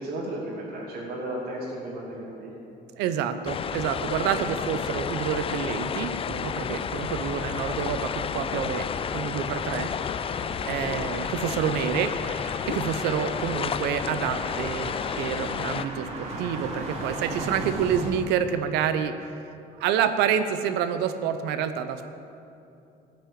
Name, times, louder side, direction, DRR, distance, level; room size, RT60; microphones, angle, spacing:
voice 1, 0.0-2.5 4.3-4.8 10.4-10.9, right 1 dB, 70° right, -6 dB, 2.6 m, -35 dB
voice 2, 3.0-8.8 9.1-9.9 10.7-12.1 12.7-19.1 19.8-22.1, right 8 dB, 90° right, 10 dB, 0.8 m, -28 dB
sound 1, 3.5-15.9, left 7 dB, 35° left, 0.4 m, -31 dB
sound 2, 6.5-18.1, right 2 dB, 35° right, 2.7 m, -39 dB
14.5 x 6.2 x 8.7 m, 2.7 s
cardioid pair, 110°, 17 cm